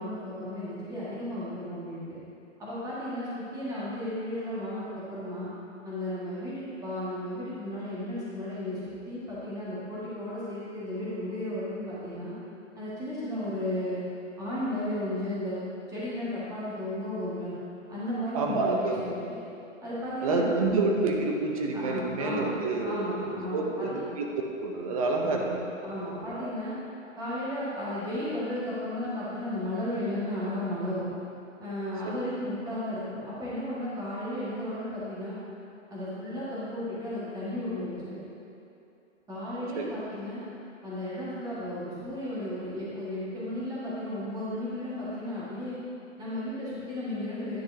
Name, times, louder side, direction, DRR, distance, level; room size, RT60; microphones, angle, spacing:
voice 1, 0.0-2.0 2.6-5.5 5.8-12.3 12.7-14.0 14.4-15.6 15.9-17.5 17.9-19.2 19.8-20.5 21.7-22.5 22.8-24.0 25.2-25.5 25.8-26.7 27.2-31.1 31.6-35.4 35.9-38.2 39.3-40.4 40.8-45.8 46.2-47.6, left 1 dB, 10° right, -10 dB, 1.7 m, -34 dB
voice 2, 18.3-19.0 20.2-24.3 24.6-25.6 26.1-26.5 39.7-40.0, right 3 dB, 30° right, 1 dB, 0.6 m, -28 dB
9.9 x 6.1 x 2.7 m, 2.7 s
hypercardioid pair, 145°, 39 cm